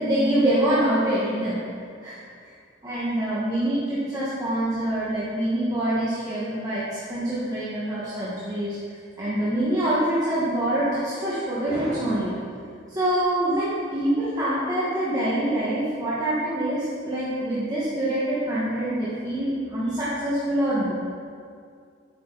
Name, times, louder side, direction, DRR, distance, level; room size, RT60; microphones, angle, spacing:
voice 1, 0.0-1.6 2.0-2.2 2.8-12.3 12.9-20.9, right 1 dB, 20° right, -10 dB, 1.6 m, -25 dB
11.0 x 8.9 x 4.1 m, 2.3 s
head